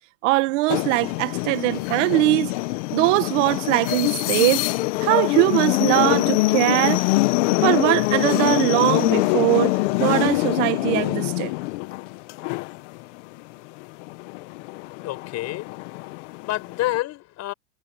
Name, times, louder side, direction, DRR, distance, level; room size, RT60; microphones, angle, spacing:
voice 1, 0.2-2.5 2.9-4.7 5.0-7.0 7.6-11.5, right 21 dB, 60° right, 1.9 m, -21 dB
sound 1, 0.7-13.4 13.8-17.0, left 22 dB, 60° left, 1.4 m, -24 dB
voice 2, 15.0-17.5, left 16 dB, 40° left, 5.7 m, -29 dB
supercardioid pair, 135°, 41 cm